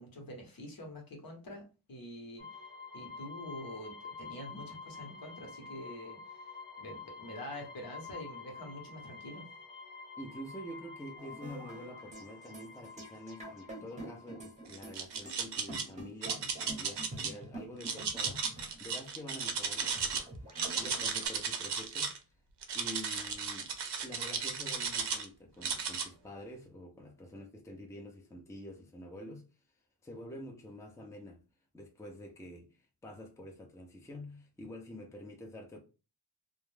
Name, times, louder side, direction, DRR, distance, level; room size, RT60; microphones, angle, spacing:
voice 1, 0.0-1.6 1.9-2.4 2.9-6.2 6.8-9.5, left 1 dB, 60° left, 0.9 m, -45 dB
sound 1, 2.4-14.9, left 4 dB, 85° left, 0.7 m, -49 dB
voice 2, 10.2-18.5 18.8-20.3 20.6-22.1 22.7-23.7 24.0-29.4 30.0-31.4 31.7-35.8, equal, 10° left, 0.5 m, -47 dB
sound 2, 11.2-21.3, right 1 dB, 20° right, 0.8 m, -47 dB
sound 3, 14.7-15.8 16.2-17.3 17.8-20.2 20.5-22.2 22.6-25.3 25.6-26.1, right 5 dB, 90° right, 0.6 m, -35 dB
2.3 x 2.1 x 3.2 m
wide cardioid pair, 100°, 40 cm